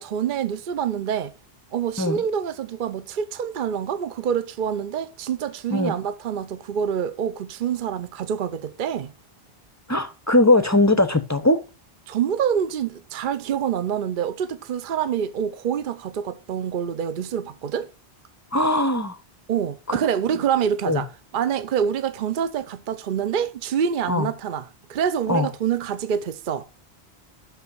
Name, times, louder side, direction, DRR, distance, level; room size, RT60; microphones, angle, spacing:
voice 1, 0.0-1.3 1.7-9.1 12.1-17.9 19.5-26.6, right 8 dB, 55° right, 0.7 m, -26 dB
voice 2, 9.9-11.6 18.5-19.2 19.9-20.0 20.9-21.0 24.1-24.3 25.3-25.5, left 2 dB, 20° left, 0.6 m, -20 dB
6.0 x 5.6 x 6.2 m
omnidirectional pair, 1.0 m